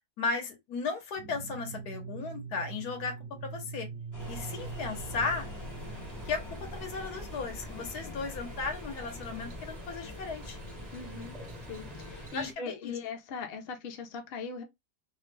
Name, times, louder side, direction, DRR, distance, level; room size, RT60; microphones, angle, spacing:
voice 1, 0.2-3.2 3.4-3.9 4.3-5.5 6.2-10.6 12.3-12.9, left 4 dB, 80° left, 1.5 m, -35 dB
sound 1, 1.2-9.6, right 5 dB, 70° right, 1.0 m, -45 dB
sound 2, 4.1-12.3, left 2 dB, 30° left, 0.3 m, -45 dB
sound 3, 4.2-12.5, right 1 dB, 40° right, 0.6 m, -47 dB
voice 2, 10.9-11.4 11.7-14.6, left 5 dB, 50° left, 0.7 m, -40 dB
3.2 x 2.1 x 3.1 m
omnidirectional pair, 1.7 m